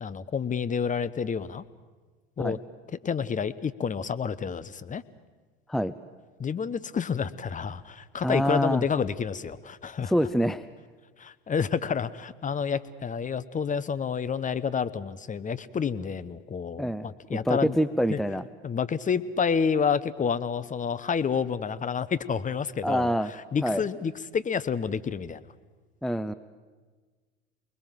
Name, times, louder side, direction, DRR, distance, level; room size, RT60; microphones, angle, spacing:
voice 1, 0.0-1.6 2.4-2.6 3.0-5.0 6.4-10.1 11.2-17.8 18.1-18.2 18.6-23.1 23.5-25.5, left 6 dB, 25° left, 15 dB, 1.1 m, -29 dB
voice 2, 8.2-8.8 10.1-10.6 16.8-18.4 22.8-23.3 23.6-23.8 26.0-26.3, equal, ahead, 13 dB, 0.7 m, -26 dB
29.0 x 21.0 x 7.6 m, 1.4 s
hypercardioid pair, 80°, 32 cm